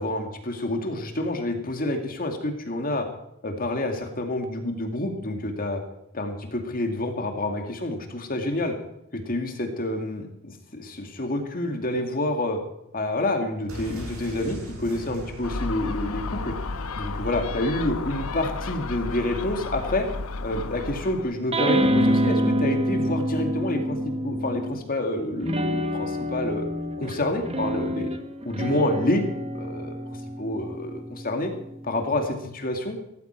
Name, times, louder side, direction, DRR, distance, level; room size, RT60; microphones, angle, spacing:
voice 1, 0.0-3.1 3.4-5.8 6.1-8.7 9.1-12.6 12.9-16.5 17.0-20.1 20.4-26.7 27.0-28.1 28.4-29.2 29.5-29.9 30.4-31.5 31.8-33.0, left 1 dB, 45° left, 4 dB, 2.3 m, -28 dB
sound 1, 13.7-17.5 17.7-17.8, right 1 dB, 80° right, 6.4 m, -41 dB
Gull seagull, 15.4-21.3, left 3 dB, 80° left, 1.1 m, -32 dB
sound 2, 21.5-24.9 25.4-32.2, equal, 30° right, 1.5 m, -27 dB
17.5 x 14.0 x 4.6 m, 0.85 s
head